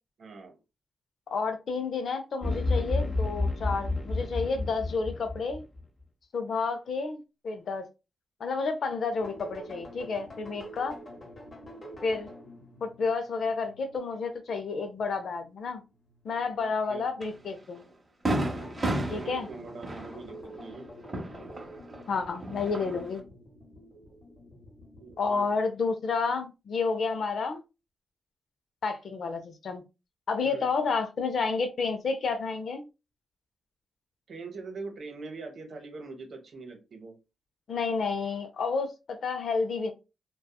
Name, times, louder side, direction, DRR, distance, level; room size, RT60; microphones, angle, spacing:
voice 1, 0.2-0.6 16.4-17.1 19.1-20.9 25.0-25.5 30.4-30.7 34.3-37.2, right 4 dB, 65° right, 0.8 m, -43 dB
voice 2, 1.3-5.6 6.3-7.2 7.4-7.9 8.4-10.9 12.0-12.3 12.8-15.8 16.2-17.8 19.1-19.5 22.1-23.3 25.2-27.6 28.8-29.8 30.3-32.8 37.7-39.9, left 4 dB, 65° left, 0.4 m, -30 dB
sound 1, 2.4-5.8, left 2 dB, 15° left, 0.7 m, -30 dB
sound 2, 9.1-15.3 15.9-16.5 17.1-17.7 18.3-25.3, equal, 40° left, 0.9 m, -48 dB
Fireworks, 17.2-17.3 17.8-17.9 18.3-22.0 22.3-23.2, right 1 dB, 25° right, 0.8 m, -33 dB
2.7 x 2.2 x 2.2 m
cardioid pair, 95°, 0 cm